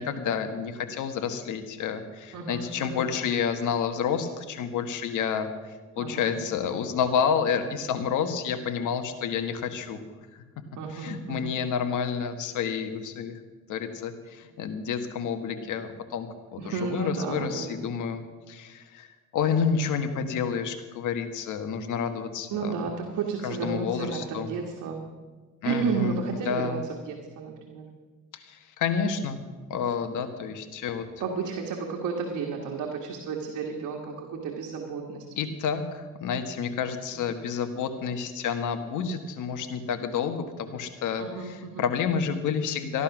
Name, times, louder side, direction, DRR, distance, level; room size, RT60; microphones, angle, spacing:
voice 1, 0.0-10.0 10.3-10.4 10.9-13.3 13.7-18.2 18.5-19.1 19.3-22.9 23.4-24.5 25.6-26.8 28.3-29.4 29.7-31.0 35.4-43.0, left 6 dB, 80° left, 7 dB, 1.5 m, -29 dB
voice 2, 2.3-3.1 6.0-6.3 10.8-11.6 16.6-17.7 22.5-25.0 25.6-27.8 31.2-35.3 37.1-37.2 41.2-41.9, right 5 dB, 80° right, 0 dB, 1.8 m, -32 dB
14.5 x 11.5 x 6.0 m, 1.3 s
cardioid pair, 90°, 30 cm